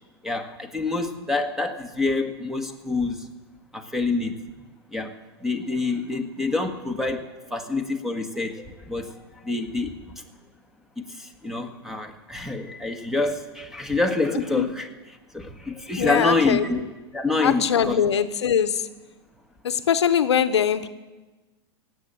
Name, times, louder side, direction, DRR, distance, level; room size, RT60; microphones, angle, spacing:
voice 1, 0.2-3.3 3.7-4.4 4.9-5.1 5.4-10.1 11.0-14.9 15.3-16.8 17.1-18.0, left 3 dB, 5° right, 7 dB, 1.5 m, -27 dB
voice 2, 14.3-14.7 16.0-16.7 17.4-18.9 19.6-20.9, left 8 dB, 85° left, 11 dB, 0.8 m, -22 dB
17.0 x 7.8 x 8.8 m, 1.2 s
hypercardioid pair, 110°, 14 cm